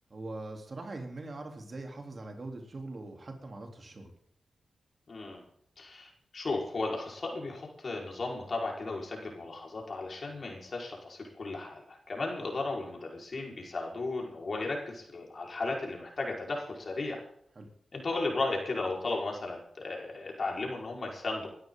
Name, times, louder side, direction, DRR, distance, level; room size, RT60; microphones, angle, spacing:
voice 1, 0.1-4.1 17.6-17.7, right 2 dB, 50° right, 2 dB, 3.5 m, -42 dB
voice 2, 5.1-5.4 5.8-17.2 17.9-21.5, left 3 dB, 55° left, -1 dB, 4.9 m, -35 dB
21.5 x 12.5 x 3.9 m, 0.66 s
cardioid pair, 45°, 0 cm